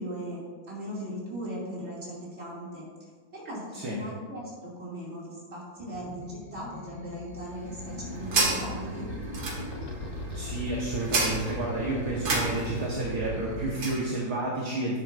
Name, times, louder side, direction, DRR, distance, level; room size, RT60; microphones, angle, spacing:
voice 1, 0.0-9.1, equal, 35° right, -6 dB, 2.7 m, -38 dB
sound 1, 5.8-13.7, left 3 dB, 85° left, 0.3 m, -40 dB
sound 2, 7.4-14.0, right 3 dB, 80° right, 2.3 m, -32 dB
voice 2, 10.3-15.0, right 2 dB, 60° right, -4 dB, 1.7 m, -30 dB
10.5 x 9.6 x 2.5 m, 1.5 s
omnidirectional pair, 2.1 m